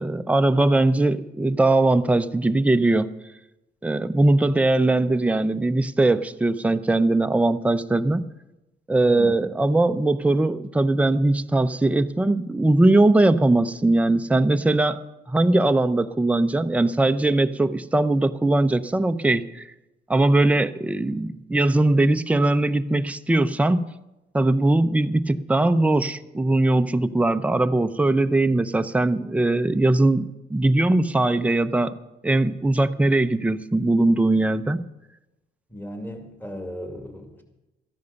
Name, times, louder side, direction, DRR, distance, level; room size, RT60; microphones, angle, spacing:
voice 1, 0.0-3.1 3.8-8.2 8.9-15.0 15.3-19.6 20.1-23.9 24.3-31.9 32.2-34.8, right 2 dB, 5° right, 9 dB, 0.6 m, -20 dB
voice 2, 9.0-9.4 35.7-37.4, equal, 10° left, 4 dB, 2.3 m, -36 dB
14.0 x 10.5 x 6.9 m, 1.0 s
cardioid pair, 90°, 20 cm